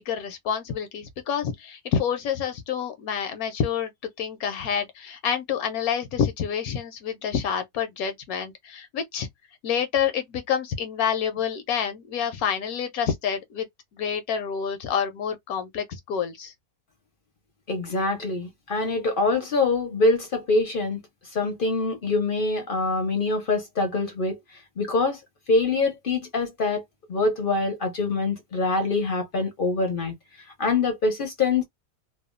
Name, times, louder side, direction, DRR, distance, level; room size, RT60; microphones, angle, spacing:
voice 1, 0.1-3.9 4.2-9.3 9.6-13.7 14.0-16.5, left 7 dB, 75° left, 1.0 m, -28 dB
voice 2, 17.7-21.0 21.3-24.4 24.8-25.2 25.5-26.8 27.1-30.1 30.6-31.6, left 3 dB, 50° left, 0.7 m, -24 dB
2.7 x 2.2 x 2.5 m
omnidirectional pair, 1.7 m